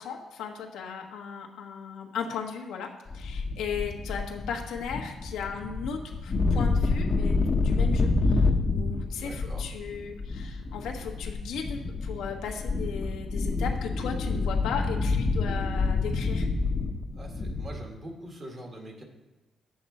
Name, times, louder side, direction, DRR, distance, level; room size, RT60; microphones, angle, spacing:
voice 1, 0.0-2.9 3.1-16.5, left 6 dB, 85° left, 1 dB, 1.2 m, -36 dB
sound 1, 3.1-17.8, left 3 dB, 40° left, 0.9 m, -28 dB
voice 2, 9.1-9.7 17.1-19.0, right 1 dB, 40° right, 2 dB, 1.9 m, -43 dB
8.4 x 7.8 x 4.2 m, 1.1 s
cardioid pair, 90°, 0 cm